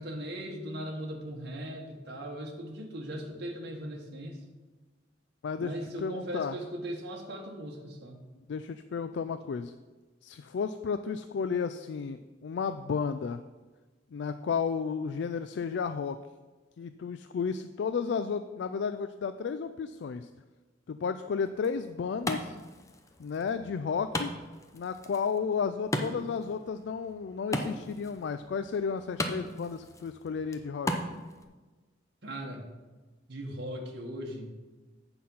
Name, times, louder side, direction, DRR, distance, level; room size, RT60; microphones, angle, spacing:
voice 1, 0.0-4.4 5.6-8.2 32.2-32.7 33.3-34.5, equal, 60° right, 0 dB, 1.4 m, -39 dB
voice 2, 5.4-6.6 8.5-9.7 10.2-13.4 14.1-16.2 16.8-20.3 20.9-22.6 23.2-24.3 24.7-30.9, left 6 dB, 65° left, 10 dB, 0.3 m, -33 dB
Wood, 21.4-31.4, left 1 dB, 15° left, 0.6 m, -38 dB
8.5 x 5.9 x 5.5 m, 1.3 s
head